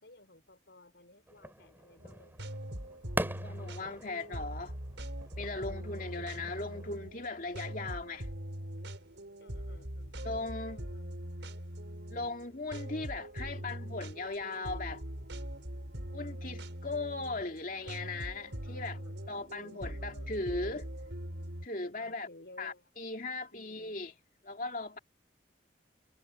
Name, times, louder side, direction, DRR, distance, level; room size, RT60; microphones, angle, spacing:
voice 1, 0.0-2.5 4.2-4.3 9.4-11.1 18.6-20.3 21.9-22.9 23.5-24.0, left 1 dB, 70° left, 4.7 m, -57 dB
sound 1, 1.3-6.9, right 1 dB, 10° right, 3.5 m, -43 dB
sound 2, 2.0-21.7, equal, 80° right, 5.1 m, -42 dB
voice 2, 3.4-4.8 5.4-8.3 10.2-10.8 12.1-15.0 16.1-19.0 19.3-20.9 21.6-22.3 22.6-24.1 24.4-25.0, left 3 dB, 45° left, 2.4 m, -38 dB
head